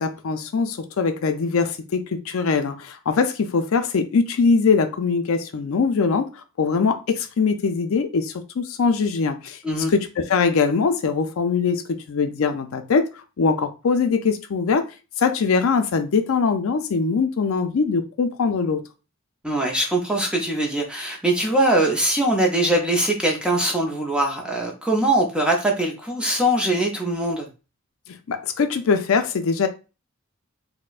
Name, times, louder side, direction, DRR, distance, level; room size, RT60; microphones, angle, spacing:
voice 1, 0.0-6.3 6.6-9.6 9.9-13.1 13.4-14.8 15.2-18.8 28.1-29.7, left 5 dB, 75° left, 0.4 m, -22 dB
voice 2, 19.4-27.5, right 1 dB, 5° right, 0.5 m, -22 dB
4.1 x 2.1 x 2.4 m
head